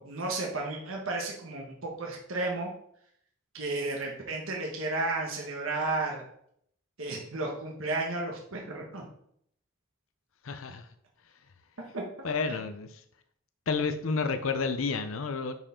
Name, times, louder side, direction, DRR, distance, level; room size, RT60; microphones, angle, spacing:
voice 1, 0.0-2.7 3.5-6.2 7.0-9.0 11.9-12.0 12.5-12.6, right 2 dB, 85° right, -1 dB, 1.5 m, -33 dB
voice 2, 10.4-10.9 12.2-13.0 13.7-15.5, left 4 dB, 80° left, 9 dB, 0.6 m, -30 dB
9.5 x 4.8 x 3.7 m, 0.67 s
head